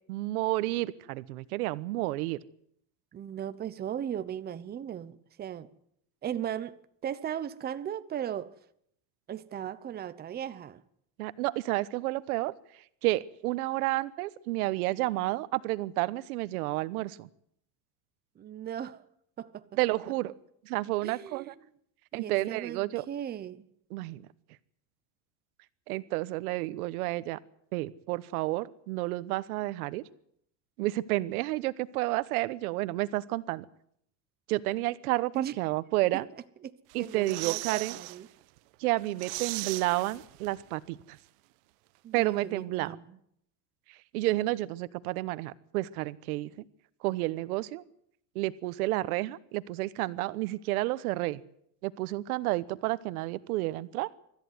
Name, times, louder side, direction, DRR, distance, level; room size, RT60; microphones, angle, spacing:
voice 1, 0.1-2.4 11.2-12.5 13.0-17.3 19.8-20.3 20.6-21.5 22.1-23.0 23.9-24.2 25.9-27.4 27.7-30.0 30.8-33.6 34.5-36.2 36.9-38.0 38.8-41.2 42.1-42.9 43.9-46.6 47.0-47.8 48.3-51.4 51.8-54.1, right 18 dB, 90° right, 1.2 m, -31 dB
voice 2, 3.1-5.7 6.2-8.6 9.3-10.8 18.4-19.0 19.4-19.7 21.0-21.6 22.1-23.7 35.3-35.6 36.6-38.3 42.0-43.2, right 9 dB, 20° right, 0.9 m, -37 dB
sound 1, 36.9-38.2 38.6-38.7 39.0-40.7 41.0-41.1, right 22 dB, 70° right, 1.1 m, -38 dB
25.0 x 14.0 x 9.5 m
cardioid pair, 150°, 43 cm